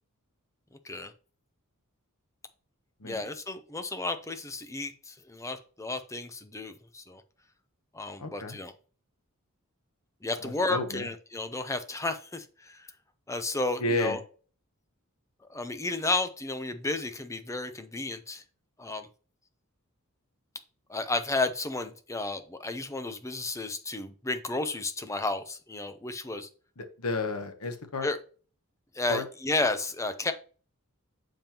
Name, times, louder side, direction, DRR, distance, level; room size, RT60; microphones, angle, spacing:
voice 1, 0.7-1.1 3.0-7.2 7.9-8.7 10.2-12.9 13.3-14.2 15.5-18.4 18.8-19.1 20.9-26.5 28.0-28.2 28.9-30.3, left 2 dB, 15° left, 9 dB, 0.6 m, -32 dB
voice 2, 8.2-8.6 10.4-11.1 13.8-14.2 26.8-28.1 29.1-29.2, left 2 dB, 75° left, 7 dB, 1.1 m, -32 dB
7.3 x 5.3 x 2.9 m, 0.40 s
head